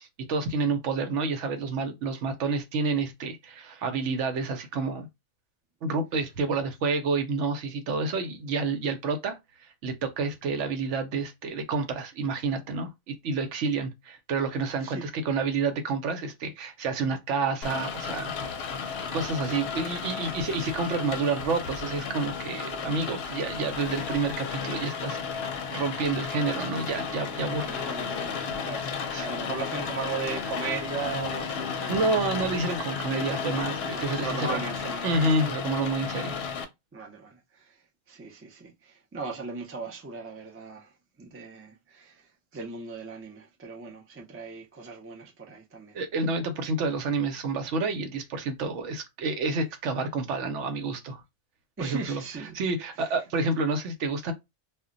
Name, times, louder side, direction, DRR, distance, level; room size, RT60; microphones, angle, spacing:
voice 1, 0.0-5.1 5.8-9.4 9.8-18.6 19.1-25.2 25.7-27.7 29.1-29.3 31.9-34.6 35.0-36.4 45.9-51.2 51.8-52.2 52.5-54.3, right 3 dB, 80° right, 0.9 m, -29 dB
Rain, 17.6-36.6, left 6 dB, 65° left, 0.7 m, -33 dB
voice 2, 27.6-32.2 33.8-35.2 36.2-36.5 36.9-37.8 38.1-42.3 42.5-46.0 51.8-52.6 53.0-53.1, right 4 dB, 20° right, 0.3 m, -38 dB
2.2 x 2.1 x 3.7 m
omnidirectional pair, 1.2 m